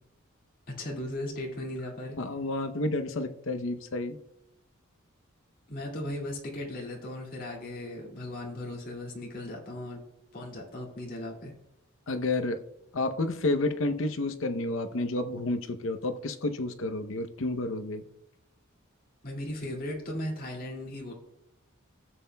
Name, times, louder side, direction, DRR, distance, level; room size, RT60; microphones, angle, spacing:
voice 1, 0.7-2.2 5.7-10.0 10.3-11.5 19.2-21.1, left 1 dB, 45° left, -3 dB, 2.1 m, -37 dB
voice 2, 2.2-4.2 12.1-12.6 12.9-18.0, left 2 dB, 65° left, 9 dB, 0.7 m, -30 dB
15.5 x 7.6 x 2.2 m, 0.81 s
head